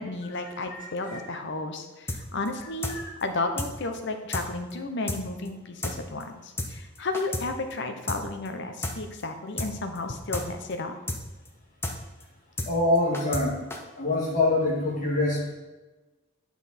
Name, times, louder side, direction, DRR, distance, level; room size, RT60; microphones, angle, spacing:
voice 1, 0.0-10.9, left 2 dB, 55° left, 6 dB, 0.9 m, -33 dB
voice 2, 0.7-1.2 2.9-3.1 12.7-13.6 13.9-15.5, left 2 dB, 40° left, -4 dB, 2.3 m, -25 dB
sound 1, 2.1-2.2 2.4-2.5 2.8-2.9 3.2-3.3 3.6-3.7 3.9-4.0 4.3-4.4 4.7-4.8 5.1-5.2 5.4-5.5 5.8-5.9 6.2-6.3 6.6-6.7 6.9-7.4 7.7-7.8 8.1-8.2 8.4-8.5 8.8-8.9 9.2-9.3 9.6-9.7 9.9-10.0 10.3-10.4 10.7-10.8 11.1-11.2 11.4-11.5 11.8-11.9 12.2-12.3 12.6-12.7 12.9-13.4 13.7-13.8, left 1 dB, 10° left, 0.8 m, -31 dB
9.2 x 5.8 x 4.3 m, 1.2 s
head